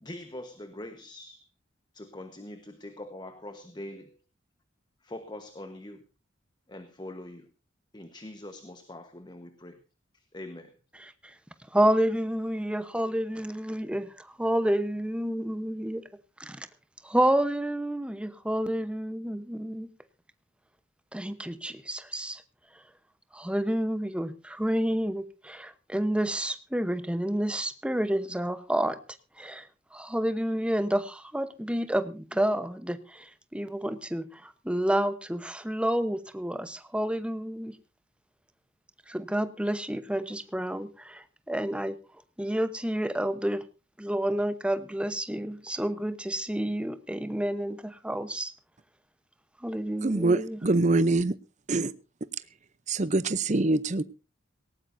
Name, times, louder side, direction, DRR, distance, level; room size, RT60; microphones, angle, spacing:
voice 1, 0.0-1.4 1.9-4.2 5.0-6.1 6.7-7.5 7.9-9.8 10.1-10.7, left 1 dB, 20° left, 8 dB, 1.2 m, -43 dB
voice 2, 11.0-11.3 11.7-16.0 16.4-16.7 17.0-19.9 21.1-22.4 23.3-29.0 29.4-37.8 39.1-42.0 42.4-43.6 44.0-48.5 49.6-50.6, right 1 dB, 5° right, 11 dB, 0.9 m, -29 dB
voice 3, 50.0-51.4 51.7-51.9 52.9-54.0, right 2 dB, 35° right, 15 dB, 0.7 m, -24 dB
18.5 x 18.0 x 2.7 m, 0.31 s
head